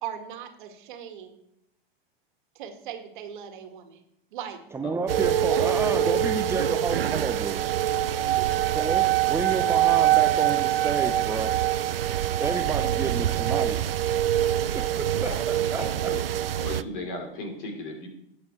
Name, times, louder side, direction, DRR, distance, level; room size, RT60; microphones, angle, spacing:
voice 1, 0.0-1.4 2.6-4.0 4.3-4.6 5.5-5.7 8.2-8.5 14.3-14.7, right 9 dB, 55° right, 5 dB, 1.9 m, -38 dB
voice 2, 4.7-7.6 8.7-11.6 12.4-13.8 14.3-16.1, right 4 dB, 10° right, 5 dB, 0.6 m, -30 dB
sound 1, 5.1-16.8, right 12 dB, 75° right, 0.5 m, -24 dB
voice 3, 15.1-16.2 16.5-18.1, left 1 dB, 55° left, 2 dB, 3.4 m, -37 dB
18.5 x 7.7 x 3.2 m, 0.77 s
figure-of-eight pair, 95°, 29 cm